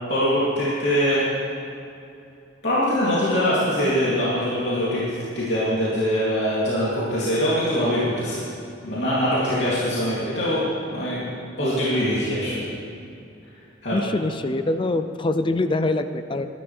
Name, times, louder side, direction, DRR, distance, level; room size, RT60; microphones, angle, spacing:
voice 1, 0.1-1.2 2.6-5.0 5.3-8.4 8.8-12.6 13.8-14.0, equal, 65° left, -10 dB, 3.2 m, -23 dB
voice 2, 13.9-16.5, left 2 dB, 25° left, 9 dB, 0.5 m, -24 dB
21.5 x 12.0 x 3.5 m, 2.6 s
head